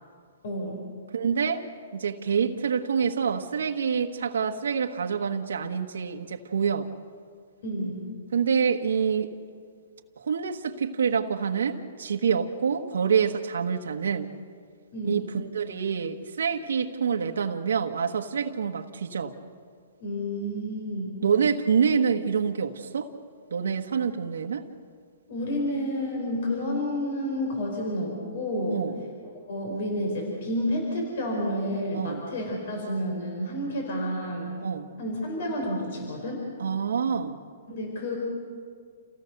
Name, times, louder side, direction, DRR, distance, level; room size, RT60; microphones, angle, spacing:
voice 1, 0.4-0.8 7.6-8.0 14.9-15.3 20.0-21.2 25.3-28.9 29.5-34.5 35.0-36.4 37.7-38.2, equal, 60° left, 1 dB, 5.3 m, -30 dB
voice 2, 1.1-1.6 1.9-6.9 8.3-9.3 10.2-14.3 15.0-19.3 21.2-23.1 23.5-24.7 28.7-28.9 31.9-32.2 34.6-34.9 36.6-37.4, right 6 dB, 85° right, 4 dB, 1.4 m, -26 dB
28.5 x 16.5 x 6.7 m, 2.1 s
hypercardioid pair, 150°, 0 cm